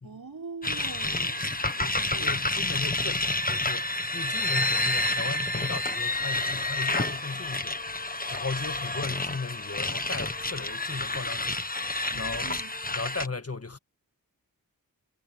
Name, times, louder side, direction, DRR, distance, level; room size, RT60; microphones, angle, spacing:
voice 1, 0.0-2.4 12.1-12.9, right 4 dB, 70° right, 6.1 m, -43 dB
sound 1, 0.6-13.3, left 2 dB, 25° left, 1.4 m, -29 dB
voice 2, 2.2-11.6 12.2-12.5 12.9-13.8, left 4 dB, 40° left, 1.8 m, -36 dB
wide cardioid pair, 65°, 37 cm